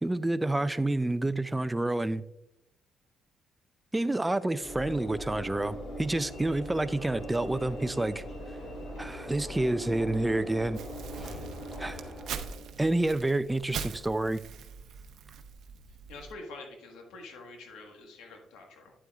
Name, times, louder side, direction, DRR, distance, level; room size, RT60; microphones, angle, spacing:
voice 1, 0.0-2.2 3.9-8.2 9.0-10.8 11.8-12.1 12.8-14.4, right 2 dB, 10° right, 13 dB, 0.4 m, -29 dB
Train / Engine / Alarm, 4.6-12.8, equal, 60° left, 2.5 m, -41 dB
Crumpling crinkling, 10.7-16.3, right 7 dB, 75° right, 0.7 m, -42 dB
voice 2, 16.1-18.9, left 2 dB, 90° left, 2 dB, 1.5 m, -46 dB
9.8 x 7.7 x 2.4 m, 0.88 s
cardioid pair, 90°, 0 cm